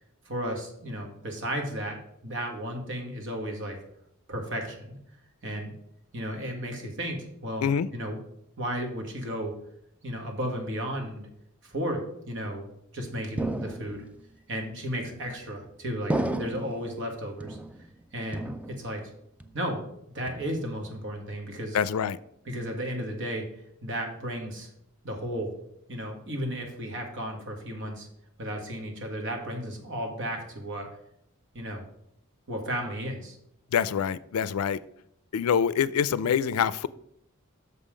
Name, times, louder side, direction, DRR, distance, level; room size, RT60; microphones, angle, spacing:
voice 1, 0.2-2.0 2.2-3.8 4.3-5.0 5.4-5.7 6.1-7.7 7.9-8.2 8.6-9.5 10.0-11.3 11.6-14.1 14.5-17.6 18.1-19.0 19.5-19.9 20.1-21.8 22.4-23.4 23.8-24.7 25.0-25.5 25.9-28.1 28.4-30.9 31.5-31.8 32.5-33.4, equal, 60° right, 2 dB, 1.7 m, -34 dB
sound 1, 13.4-14.2 15.1-15.6 16.1-16.9 17.4-18.0 18.3-19.1 19.4-19.8 20.3-20.9, right 1 dB, 5° right, 0.4 m, -33 dB
voice 2, 21.7-22.2 33.7-34.8 35.3-36.9, left 7 dB, 85° left, 18 dB, 0.4 m, -25 dB
6.6 x 5.6 x 5.0 m, 0.75 s
head